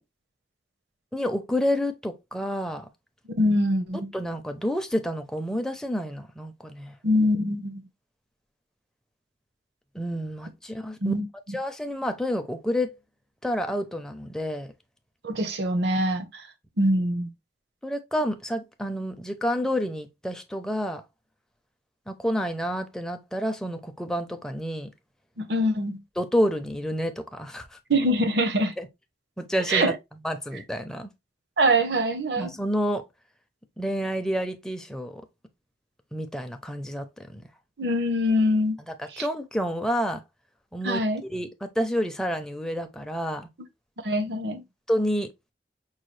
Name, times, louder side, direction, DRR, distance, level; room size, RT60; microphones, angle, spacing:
voice 1, 1.1-2.9 4.1-6.9 9.9-11.1 11.5-13.0 13.4-14.7 17.8-21.0 22.1-24.9 26.2-27.8 28.8-28.9 29.4-29.9 30.2-31.1 32.4-33.0 33.8-35.2 36.1-37.4 39.0-40.2 40.7-43.5 44.9-45.3, equal, 5° left, 0.5 m, -29 dB
voice 2, 3.3-4.1 7.0-7.8 11.0-11.3 15.2-16.4 16.8-17.3 25.4-26.0 27.9-28.7 29.7-29.9 31.6-32.5 37.8-38.8 39.1-39.3 40.8-41.2 44.0-44.6, equal, 65° right, 0.7 m, -24 dB
5.5 x 2.3 x 3.2 m
head